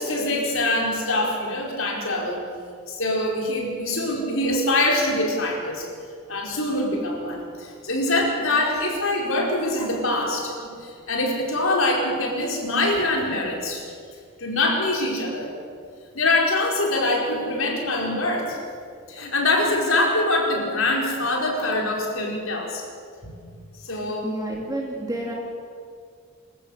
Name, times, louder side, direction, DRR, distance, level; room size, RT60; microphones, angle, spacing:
voice 1, 0.0-2.5 2.9-5.9 6.3-13.8 14.4-15.5 16.1-18.6 19.1-22.8 23.2-23.3 23.8-24.3, left 2 dB, 70° left, -1 dB, 4.9 m, -24 dB
voice 2, 24.2-25.3, right 1 dB, 15° right, -1 dB, 2.6 m, -29 dB
25.0 x 14.0 x 8.2 m, 2.2 s
head